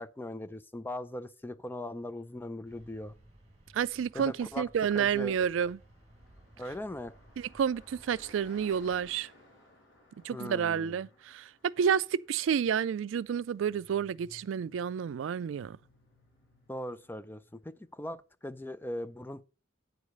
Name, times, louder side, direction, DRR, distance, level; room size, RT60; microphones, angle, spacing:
voice 1, 0.0-3.1 4.1-4.7 4.9-5.3 6.6-7.1 10.3-11.0 16.7-19.5, left 1 dB, 10° left, 0.4 m, -40 dB
Car passing by, 1.8-17.9, left 1 dB, 65° left, 5.1 m, -61 dB
sound 1, 2.6-9.2, right 1 dB, 35° right, 1.7 m, -59 dB
voice 2, 3.7-5.8 7.4-9.3 10.2-15.8, right 7 dB, 80° right, 0.3 m, -30 dB
9.3 x 4.9 x 5.2 m
head